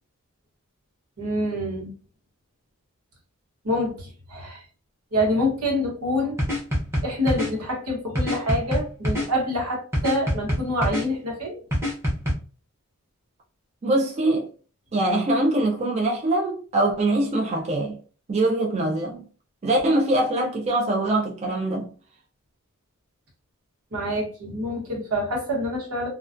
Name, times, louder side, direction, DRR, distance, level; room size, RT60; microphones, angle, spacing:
voice 1, 1.2-1.9 3.6-4.6 5.1-6.4 7.0-11.6 23.9-26.1, equal, 90° right, 1.0 m, -26 dB
sound 1, 6.4-7.5 8.2-9.3 9.9-11.0 11.7-12.3, equal, 10° right, 0.7 m, -24 dB
voice 2, 13.8-14.5 14.9-18.0 18.3-19.3 19.6-21.9, right 1 dB, 30° right, 0.3 m, -23 dB
2.3 x 2.2 x 2.4 m
head